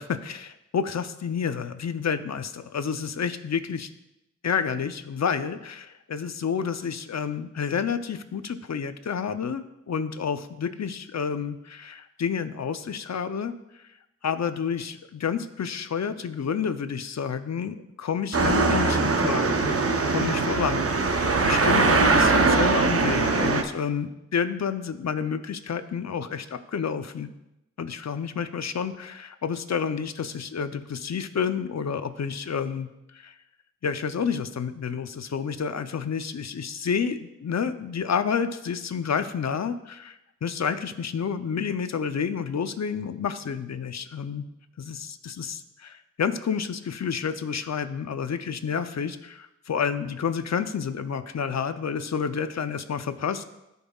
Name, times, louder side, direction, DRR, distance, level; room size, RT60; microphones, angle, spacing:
voice 1, 0.0-3.9 4.4-13.8 14.2-27.3 27.8-32.9 33.1-33.3 33.8-44.4 44.8-53.4, left 6 dB, 65° left, 11 dB, 0.6 m, -29 dB
sound 1, 18.3-23.6, right 3 dB, 50° right, 0.8 m, -21 dB
14.0 x 5.5 x 2.4 m, 0.91 s
cardioid pair, 45°, 30 cm